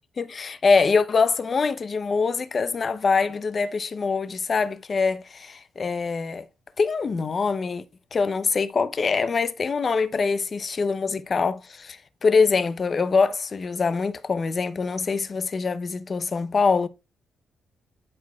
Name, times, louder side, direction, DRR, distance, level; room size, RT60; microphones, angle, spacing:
voice 1, 0.2-6.5 6.8-7.8 8.1-16.9, left 4 dB, 40° left, 0.7 m, -24 dB
12.0 x 4.7 x 2.3 m
cardioid pair, 100°, 0 cm